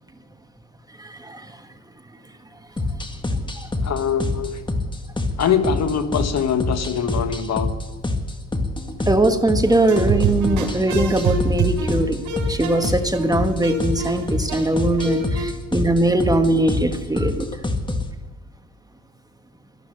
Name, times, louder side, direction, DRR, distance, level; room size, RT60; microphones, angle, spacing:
voice 1, 1.0-1.6 9.1-17.5, right 2 dB, 10° right, 7 dB, 1.5 m, -21 dB
sound 1, 2.8-18.1, left 2 dB, 15° left, 1.8 m, -26 dB
voice 2, 3.8-4.6 5.4-7.7, left 7 dB, 60° left, 9 dB, 1.5 m, -23 dB
sound 2, 9.7-15.4, right 3 dB, 80° right, 4.5 m, -26 dB
13.0 x 12.5 x 8.0 m, 1.3 s
cardioid pair, 90°, 30 cm